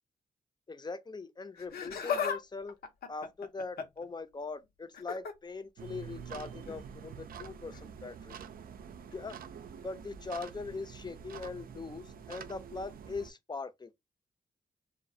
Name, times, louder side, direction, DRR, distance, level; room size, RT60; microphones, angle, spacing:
voice 1, 0.7-2.8 3.1-8.4 9.1-9.4 9.8-13.9, left 4 dB, 25° left, 0.5 m, -41 dB
Laughter, 1.6-2.4 2.7-4.0 4.9-5.3 6.6-6.8 7.7-7.8, left 7 dB, 70° left, 0.6 m, -35 dB
sound 1, 5.8-13.3, right 7 dB, 65° right, 0.4 m, -47 dB
2.3 x 2.1 x 2.6 m
supercardioid pair, 50°, 16 cm